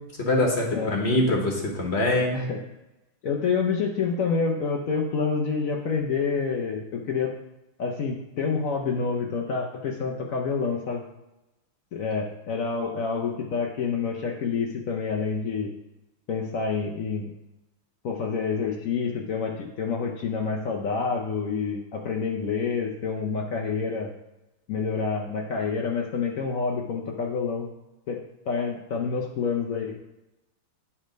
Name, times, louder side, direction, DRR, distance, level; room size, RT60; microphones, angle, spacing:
voice 1, 0.2-2.4, left 2 dB, 40° left, 0 dB, 1.1 m, -23 dB
voice 2, 3.2-7.3 7.8-11.0 11.9-15.7 16.3-17.3 18.0-24.1 24.7-27.7 28.1-28.2 28.5-30.0, left 5 dB, 80° left, 0 dB, 0.7 m, -28 dB
8.6 x 3.3 x 5.0 m, 0.96 s
omnidirectional pair, 2.3 m